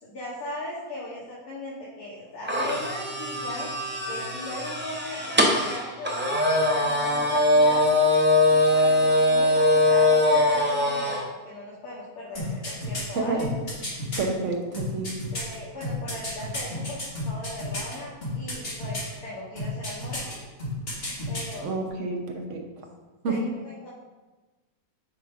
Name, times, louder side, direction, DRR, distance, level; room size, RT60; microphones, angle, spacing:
voice 1, 0.0-6.2 6.7-7.9 8.5-13.5 15.3-20.3 21.3-21.8 23.3-23.9, left 1 dB, 70° left, -7 dB, 1.9 m, -38 dB
sound 1, 2.5-11.2, left 1 dB, 10° right, 0.5 m, -22 dB
sound 2, 12.3-14.2 14.7-17.9 18.2-19.1 19.6-20.3 20.6-21.5 21.8-21.9, equal, 35° left, 2.2 m, -32 dB
voice 2, 13.1-13.5 14.2-15.1 21.6-22.6 23.2-23.5, right 3 dB, 50° right, 2 dB, 1.2 m, -29 dB
8.5 x 4.9 x 3.6 m, 1.2 s
omnidirectional pair, 1.7 m